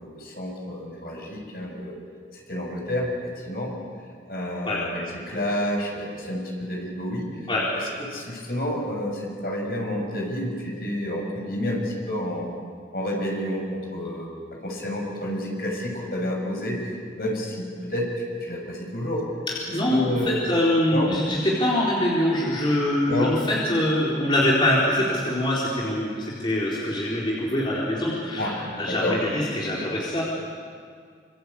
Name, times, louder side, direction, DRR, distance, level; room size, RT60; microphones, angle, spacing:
voice 1, 0.0-2.0 2.5-3.1 3.4-3.7 4.3-7.3 7.7-7.8 8.1-12.5 12.9-14.3 14.6-19.2 19.9-20.5 20.9-21.2 23.1-23.3 28.4-28.6 28.9-29.2, left 1 dB, 55° left, 0 dB, 6.9 m, -29 dB
voice 2, 19.5-30.2, left 1 dB, 25° left, -5 dB, 4.1 m, -24 dB
27.0 x 26.0 x 8.5 m, 2.1 s
head